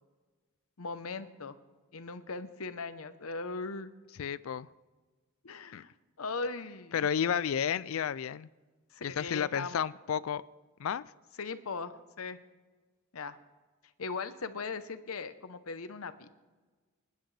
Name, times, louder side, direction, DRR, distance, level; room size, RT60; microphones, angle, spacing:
voice 1, 0.8-1.5 1.9-3.9 5.4-5.9 6.2-7.1 8.9-9.8 11.4-12.4 13.1-13.4 14.0-16.3, left 4 dB, 90° left, 11 dB, 0.8 m, -39 dB
voice 2, 4.2-4.7 5.7-5.8 6.9-8.5 9.0-10.4 10.8-11.1, left 8 dB, 70° left, 18 dB, 0.4 m, -31 dB
25.5 x 10.5 x 3.3 m, 1.3 s
head